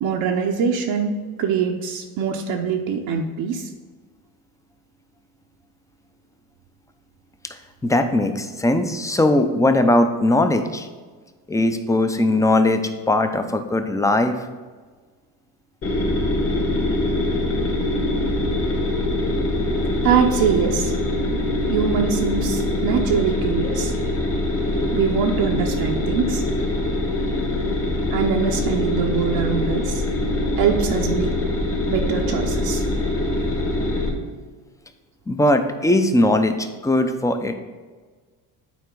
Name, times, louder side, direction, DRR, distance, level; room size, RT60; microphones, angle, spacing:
voice 1, 0.0-3.7 20.0-20.9 21.7-23.9 24.9-26.4 28.1-30.0 30.6-31.4 31.9-32.8, right 6 dB, 60° right, 1 dB, 0.7 m, -23 dB
voice 2, 7.8-10.9 11.5-14.4 35.3-37.6, left 1 dB, 10° left, 7 dB, 0.5 m, -19 dB
sound 1, 15.8-34.1, left 1 dB, 30° left, 1.5 m, -23 dB
8.5 x 4.2 x 3.8 m, 1.4 s
supercardioid pair, 90°, 42 cm